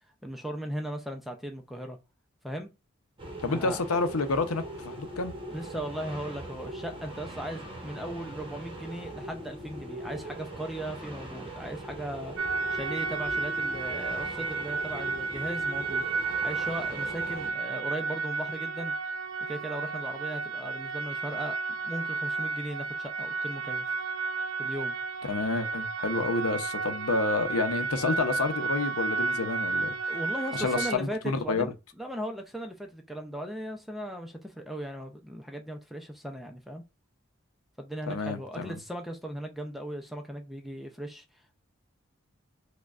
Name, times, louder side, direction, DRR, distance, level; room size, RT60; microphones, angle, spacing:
voice 1, 0.2-2.0 2.4-2.7 3.5-3.8 5.5-18.9 19.5-21.6 21.8-23.9 24.6-25.0 30.1-36.8 37.8-41.2, right 1 dB, ahead, 0.4 m, -38 dB
sound 1, 3.2-17.5, right 1 dB, 25° right, 0.8 m, -41 dB
voice 2, 3.4-5.3 25.2-29.9 30.5-31.7 38.1-38.8, left 3 dB, 85° left, 0.6 m, -29 dB
sound 2, 12.4-31.0, right 4 dB, 65° right, 0.5 m, -32 dB
4.8 x 2.2 x 2.4 m
head